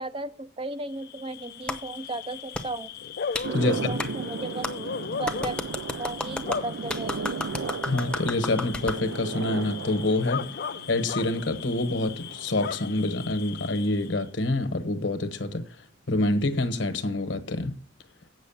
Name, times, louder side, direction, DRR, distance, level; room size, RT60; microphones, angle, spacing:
voice 1, 0.0-2.9 3.5-4.7 5.2-5.6 6.0-7.4, right 2 dB, 30° right, 0.5 m, -35 dB
Bark / Cricket, 0.9-14.2, left 6 dB, 55° left, 0.4 m, -38 dB
Clapping, 1.7-1.8 2.5-2.7 3.3-3.5 4.0-4.1 4.6-4.7 5.3-9.0, left 2 dB, 5° left, 0.8 m, -32 dB
sound 1, 3.4-13.8, right 5 dB, 85° right, 0.5 m, -36 dB
voice 2, 7.8-10.6 10.9-15.6 16.1-17.8, left 2 dB, 75° left, 1.2 m, -26 dB
8.2 x 6.3 x 7.1 m
head